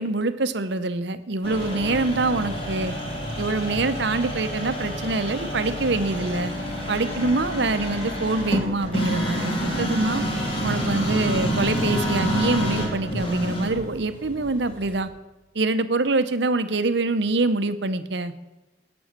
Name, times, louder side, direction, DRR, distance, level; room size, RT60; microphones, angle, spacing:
voice 1, 0.0-2.9 3.4-6.5 6.9-10.3 10.6-15.1 15.5-18.3, right 3 dB, 60° right, 12 dB, 0.8 m, -25 dB
sound 1, 1.4-15.0, equal, 30° left, 2.9 m, -28 dB
17.0 x 6.2 x 7.4 m, 1.1 s
head